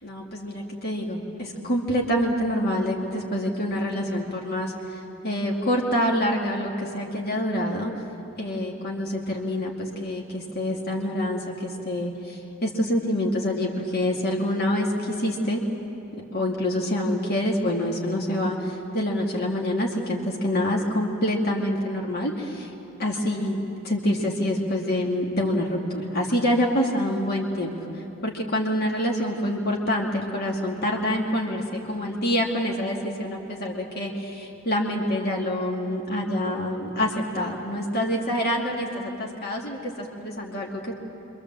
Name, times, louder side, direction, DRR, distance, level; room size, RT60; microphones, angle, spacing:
voice 1, 0.0-7.9 8.4-15.6 16.1-22.7 23.0-41.0, left 1 dB, 50° left, -1 dB, 2.4 m, -26 dB
28.0 x 24.5 x 7.6 m, 2.9 s
head